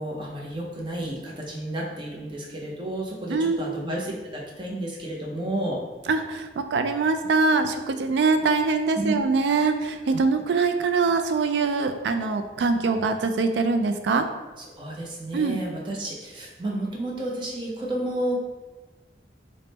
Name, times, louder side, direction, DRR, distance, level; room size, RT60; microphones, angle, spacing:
voice 1, 0.0-5.8 9.0-9.1 14.7-18.4, right 1 dB, 25° right, -3 dB, 0.5 m, -31 dB
voice 2, 6.1-14.2 15.3-15.6, right 4 dB, 75° right, 7 dB, 0.3 m, -23 dB
3.4 x 2.1 x 4.0 m, 1.2 s
head